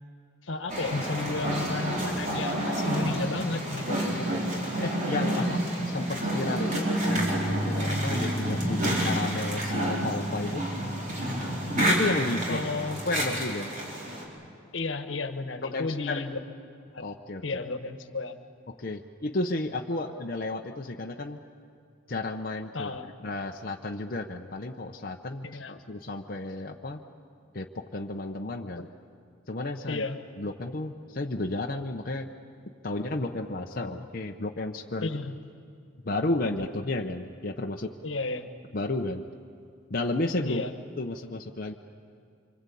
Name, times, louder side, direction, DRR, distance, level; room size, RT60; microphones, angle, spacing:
voice 1, 0.4-4.4 5.4-5.5 12.5-13.0 14.7-16.4 16.9-17.1 17.4-18.4 20.0-20.1 22.7-23.0 25.4-25.8 28.8-28.9 29.9-30.2 35.0-35.3 38.0-38.5 40.4-40.7, left 3 dB, 80° left, 8 dB, 1.4 m, -33 dB
sound 1, 0.7-14.2, right 1 dB, 40° right, 4.5 m, -29 dB
voice 2, 4.3-10.7 11.8-12.6 13.1-13.7 15.6-16.2 17.0-17.4 18.7-21.4 22.1-27.0 27.5-28.9 29.5-30.0 30.4-32.3 32.8-35.1 36.0-37.9 38.7-39.3 39.9-40.6 41.0-41.7, left 2 dB, 50° left, 1 dB, 0.9 m, -32 dB
sound 2, 7.2-13.4, equal, 60° right, 5.3 m, -36 dB
26.0 x 25.0 x 8.5 m, 2.3 s
head